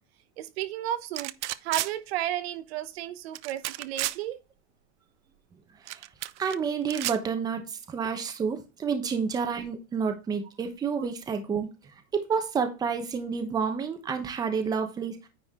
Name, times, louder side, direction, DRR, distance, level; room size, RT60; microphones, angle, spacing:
voice 1, 0.4-1.3 1.6-4.4, right 12 dB, 60° right, 0.9 m, -33 dB
sound 1, 1.2-1.9 3.3-4.2 5.9-6.6 6.9-7.2, right 16 dB, 85° right, 0.6 m, -32 dB
voice 2, 6.4-11.7 12.1-15.2, right 6 dB, 10° right, 0.9 m, -29 dB
9.7 x 4.8 x 3.6 m
supercardioid pair, 170°, 34 cm